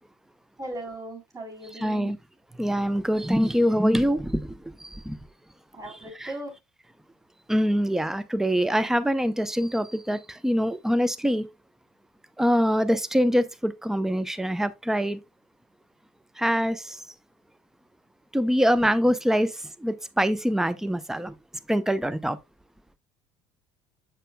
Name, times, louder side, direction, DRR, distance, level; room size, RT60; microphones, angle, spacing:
voice 1, 0.6-2.1 5.7-6.5, right 1 dB, 20° right, 3.5 m, -38 dB
voice 2, 1.8-2.2 2.6-5.2 6.2-6.3 7.5-11.5 12.4-15.2 16.4-17.0 18.3-19.5 19.8-21.3 21.7-22.4, equal, 5° right, 0.6 m, -24 dB
7.3 x 6.6 x 2.2 m
hypercardioid pair, 65°, 15 cm